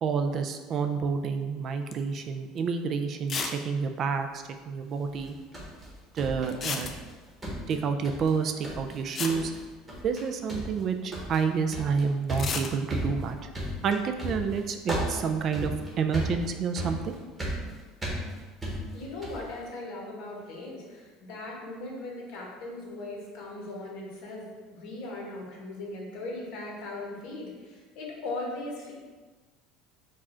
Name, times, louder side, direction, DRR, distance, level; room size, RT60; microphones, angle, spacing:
voice 1, 0.0-5.4 6.1-6.9 7.7-9.5 10.0-13.5 13.8-17.1, right 5 dB, 40° right, 7 dB, 0.3 m, -29 dB
sound 1, 1.9-2.2 2.6-2.7 3.3-3.6 3.9-4.0 4.1-4.2 6.5-7.3 8.7-8.8 9.1-10.3 12.3-12.7, left 5 dB, 30° left, 0.4 m, -33 dB
sound 2, 5.1-7.1 7.4-8.4 8.6-9.0 9.3-9.6 9.9-10.2 10.5-19.5, right 1 dB, 10° right, 1.1 m, -35 dB
voice 2, 18.9-28.9, left 2 dB, 65° left, -2 dB, 1.2 m, -39 dB
4.7 x 2.4 x 4.3 m, 1.3 s
cardioid pair, 140°, 0 cm